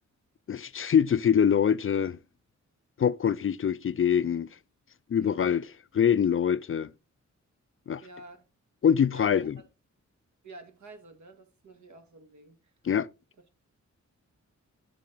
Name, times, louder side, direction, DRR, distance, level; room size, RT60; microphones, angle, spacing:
voice 1, 0.5-2.2 3.0-4.5 5.1-6.9 7.9-8.0 8.8-9.6 12.8-13.1, left 8 dB, 45° left, 0.4 m, -24 dB
voice 2, 8.0-8.4 9.1-9.6 10.4-12.6, right 2 dB, 75° right, 2.0 m, -49 dB
8.5 x 7.6 x 3.9 m
wide cardioid pair, 130°, 30 cm